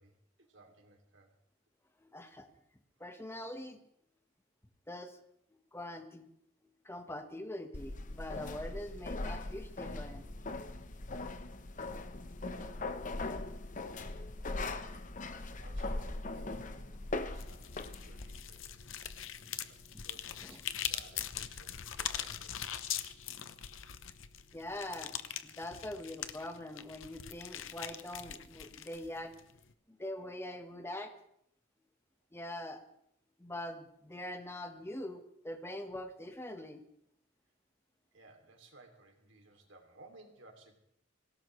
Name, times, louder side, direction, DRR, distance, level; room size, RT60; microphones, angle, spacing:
voice 1, 0.0-1.3 12.5-12.9 14.4-15.1 15.6-18.8 19.7-22.6 38.1-40.8, right 2 dB, 70° right, 3 dB, 2.8 m, -59 dB
voice 2, 2.0-2.5 3.0-3.8 4.9-5.2 5.7-6.3 6.8-10.3 19.4-19.5 19.9-20.0 20.4-20.6 24.5-25.1 25.4-29.3 29.9-31.1 32.3-32.8 33.4-36.8, left 1 dB, 15° left, 6 dB, 1.3 m, -43 dB
sound 1, 7.7-18.4, left 2 dB, 40° left, 0.9 m, -40 dB
sound 2, 17.3-29.7, left 10 dB, 75° left, 0.8 m, -42 dB
25.0 x 17.5 x 3.2 m, 0.73 s
head